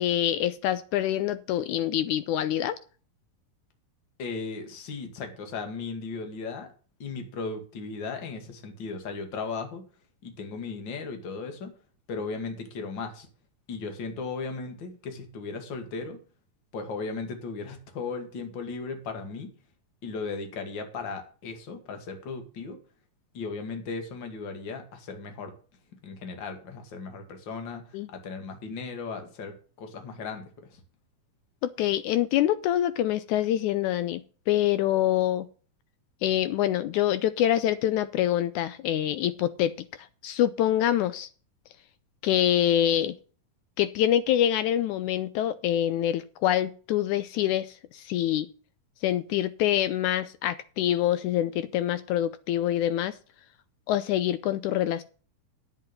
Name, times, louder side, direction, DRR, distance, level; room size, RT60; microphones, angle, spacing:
voice 1, 0.0-2.8 27.9-28.1 31.6-35.5 36.2-41.3 42.2-43.2 43.8-48.5 49.0-53.2 53.9-55.0, left 12 dB, 80° left, 14 dB, 1.8 m, -25 dB
voice 2, 4.2-6.7 7.0-9.8 10.2-11.7 12.1-13.3 13.7-16.2 16.7-19.5 20.0-22.8 23.3-25.5 26.0-30.8, left 4 dB, 40° left, 5 dB, 2.4 m, -36 dB
10.0 x 8.8 x 5.3 m, 0.39 s
omnidirectional pair, 3.8 m